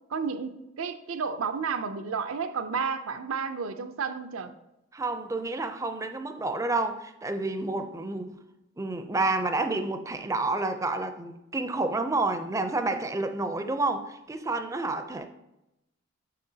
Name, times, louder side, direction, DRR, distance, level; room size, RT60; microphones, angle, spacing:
voice 1, 0.1-4.5, right 5 dB, 80° right, 9 dB, 0.5 m, -31 dB
voice 2, 4.9-8.4 8.8-15.3, right 2 dB, 15° right, 8 dB, 0.4 m, -29 dB
6.7 x 6.6 x 2.8 m, 0.89 s
head